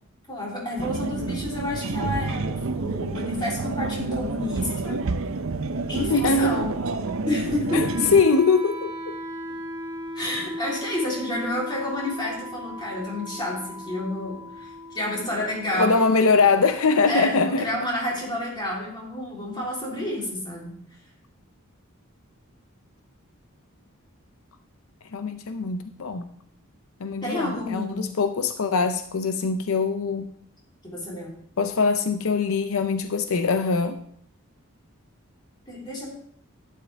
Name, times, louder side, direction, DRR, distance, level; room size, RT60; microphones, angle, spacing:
voice 1, 0.3-5.0 5.9-6.8 7.3-8.1 10.1-16.3 17.1-20.7 27.2-28.0 30.8-31.3 35.7-36.1, left 1 dB, 20° left, -4 dB, 3.3 m, -30 dB
sound 1, 0.8-8.2, right 3 dB, 70° right, 0.6 m, -29 dB
voice 2, 6.1-6.5 7.7-7.8 8.1-9.2 15.7-17.7 25.1-26.3 27.0-30.3 31.6-34.0, left 4 dB, 75° left, 9 dB, 0.6 m, -22 dB
Wind instrument woodwind instrument, 7.6-17.7, equal, 20° right, 1.9 m, -38 dB
11.5 x 9.5 x 3.4 m, 0.67 s
head